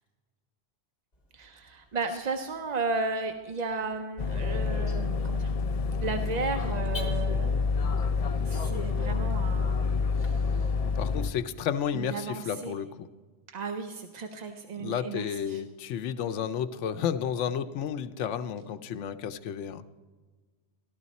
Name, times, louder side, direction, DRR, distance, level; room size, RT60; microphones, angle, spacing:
Car / Alarm, 1.1-10.3, left 3 dB, 35° left, 1.6 m, -51 dB
voice 1, 1.3-5.5 6.0-7.7 8.4-9.9 10.2-10.7 11.9-12.8 13.5-15.6, right 3 dB, 50° right, 6 dB, 0.5 m, -34 dB
sound 1, 4.2-11.3, left 4 dB, 70° left, 0.3 m, -28 dB
voice 2, 10.8-13.1 14.8-19.8, left 8 dB, 90° left, 11 dB, 0.9 m, -32 dB
13.0 x 13.0 x 4.1 m, 1.4 s
omnidirectional pair, 1.2 m